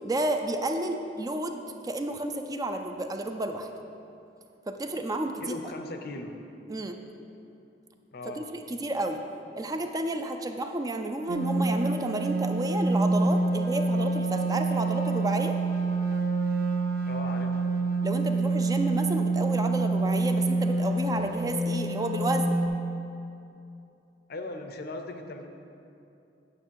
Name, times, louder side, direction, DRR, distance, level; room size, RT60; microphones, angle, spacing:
voice 1, 0.0-3.7 4.7-5.6 6.7-7.0 8.4-9.2 9.6-15.6 18.0-22.6, right 2 dB, 20° right, 5 dB, 0.4 m, -31 dB
voice 2, 5.4-6.4 8.1-8.5 17.1-17.6 24.3-25.5, left 2 dB, 60° left, 6 dB, 0.6 m, -38 dB
sound 1, 11.3-22.7, right 2 dB, 60° right, 0.7 m, -27 dB
8.8 x 5.7 x 4.6 m, 2.7 s
head